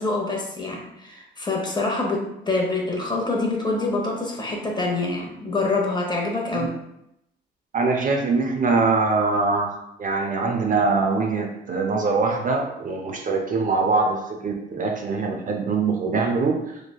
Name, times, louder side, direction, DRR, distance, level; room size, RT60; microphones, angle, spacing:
voice 1, 0.0-6.7, left 3 dB, 20° left, -1 dB, 0.6 m, -26 dB
voice 2, 7.7-16.8, right 4 dB, 40° right, 2 dB, 0.4 m, -23 dB
3.1 x 2.1 x 2.2 m, 0.82 s
cardioid pair, 90°, 20 cm